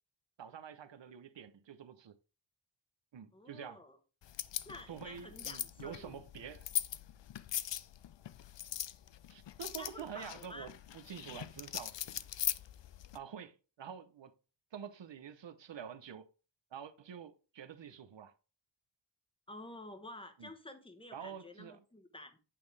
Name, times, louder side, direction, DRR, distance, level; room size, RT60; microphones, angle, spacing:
voice 1, 0.4-2.2 3.1-3.8 4.9-6.7 9.3-11.9 13.1-14.3 14.7-16.3 16.7-18.3 20.4-20.5 21.1-21.8, right 8 dB, 70° right, 0.7 m, -47 dB
voice 2, 3.3-4.0 4.6-6.2 9.8-10.7 19.5-22.4, left 1 dB, 10° left, 1.0 m, -50 dB
sound 1, 4.2-13.2, left 11 dB, 65° left, 0.5 m, -41 dB
8.6 x 5.2 x 3.3 m
wide cardioid pair, 105°, 47 cm